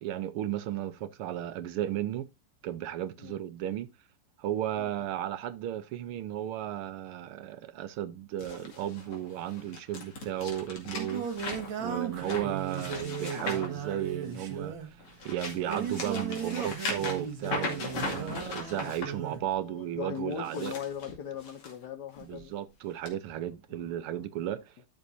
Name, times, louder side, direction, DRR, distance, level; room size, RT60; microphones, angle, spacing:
voice 1, 0.0-2.3 2.6-3.9 4.4-11.3 11.8-15.0 15.3-20.7 22.2-24.7, right 11 dB, 85° right, 1.7 m, -34 dB
sound 1, 8.4-14.5 15.0-19.1 20.3-21.7 22.2-22.4 23.1-23.2, left 3 dB, 85° left, 3.3 m, -38 dB
Singing, 10.5-19.5, right 7 dB, 65° right, 2.2 m, -37 dB
voice 2, 19.6-22.5, left 8 dB, 60° left, 1.2 m, -39 dB
13.0 x 6.2 x 2.6 m
omnidirectional pair, 2.4 m